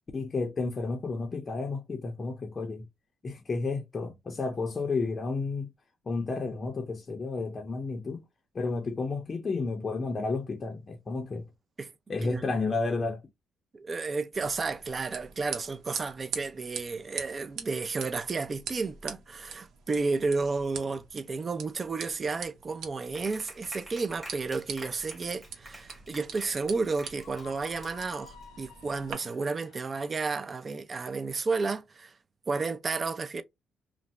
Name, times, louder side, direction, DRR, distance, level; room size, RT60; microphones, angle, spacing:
voice 1, 0.1-2.9 3.2-5.7 6.1-8.2 8.5-11.5 12.1-13.2, left 3 dB, 35° left, 0.5 m, -31 dB
voice 2, 13.7-32.1 32.5-33.4, right 4 dB, 35° right, 0.5 m, -32 dB
sound 1, 14.3-29.1, right 7 dB, 80° right, 0.8 m, -44 dB
Clapping, 23.1-28.4, right 1 dB, 5° right, 1.1 m, -48 dB
Screaming, 27.1-30.1, left 8 dB, 90° left, 0.5 m, -52 dB
2.6 x 2.0 x 3.2 m
cardioid pair, 90°, 0 cm